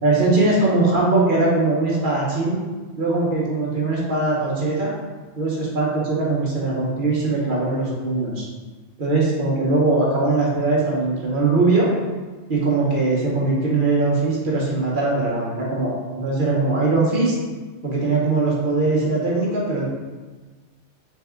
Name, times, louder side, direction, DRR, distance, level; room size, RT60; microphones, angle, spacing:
voice 1, 0.0-2.6 3.0-4.9 5.4-8.5 9.0-11.9 12.5-17.3 17.8-19.8, right 3 dB, 45° right, -4 dB, 1.0 m, -21 dB
4.0 x 3.5 x 3.6 m, 1.3 s
omnidirectional pair, 1.3 m